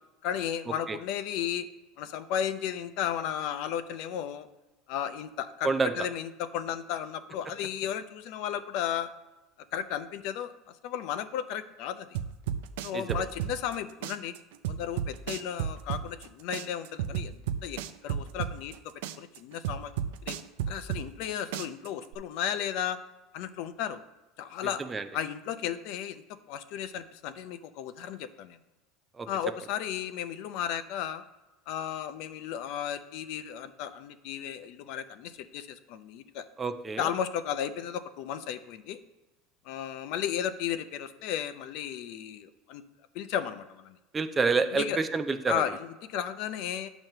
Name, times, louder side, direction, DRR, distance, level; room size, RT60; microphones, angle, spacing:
voice 1, 0.2-1.7 2.0-4.5 4.9-9.1 9.7-10.5 10.8-12.2 12.8-14.3 14.7-18.7 19.2-19.9 20.2-20.4 20.7-23.0 23.3-24.0 24.4-24.8 25.1-26.2 26.5-28.6 29.3-31.2 31.7-36.5 37.0-39.0 39.6-42.8 43.1-44.0 44.7-45.0 45.5-46.9, left 9 dB, 55° left, 11 dB, 0.5 m, -34 dB
sound 1, 12.1-13.8 14.0-16.3 16.5-18.8 19.0-21.3 21.5-22.1, right 9 dB, 90° right, 0.4 m, -32 dB
voice 2, 36.6-37.1 44.1-45.6, right 4 dB, 15° right, 9 dB, 0.4 m, -28 dB
9.0 x 3.0 x 6.6 m, 1.1 s
cardioid pair, 160°, 0 cm